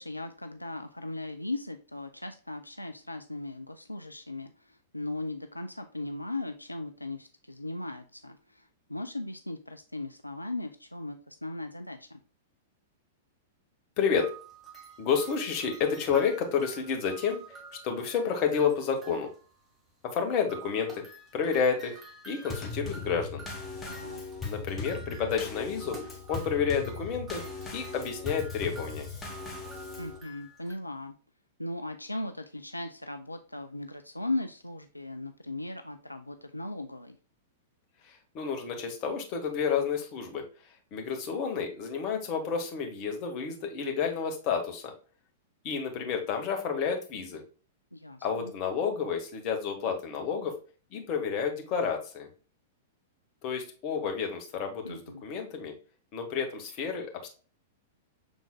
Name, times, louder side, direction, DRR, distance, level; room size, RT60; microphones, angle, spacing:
voice 1, 0.0-12.2 23.8-24.2 30.0-31.1 31.6-37.2 47.9-48.5 54.8-55.2, left 2 dB, 90° left, 7 dB, 0.3 m, -38 dB
sound 1, 14.1-19.5 20.5-30.7, right 4 dB, 15° right, 1.2 m, -49 dB
voice 2, 15.0-17.6 17.8-19.3 20.0-21.0 21.3-22.0 22.2-23.4 24.4-27.4 27.7-29.0 38.0-40.4 40.9-44.9 45.6-47.4 48.2-50.5 50.9-52.3 53.4-55.7 56.1-57.3, left 6 dB, 40° left, 3 dB, 1.2 m, -30 dB
Drum kit / Snare drum / Bass drum, 22.5-30.2, left 4 dB, 15° left, 1.1 m, -39 dB
6.1 x 3.7 x 2.3 m, 0.38 s
figure-of-eight pair, 100°, 0 cm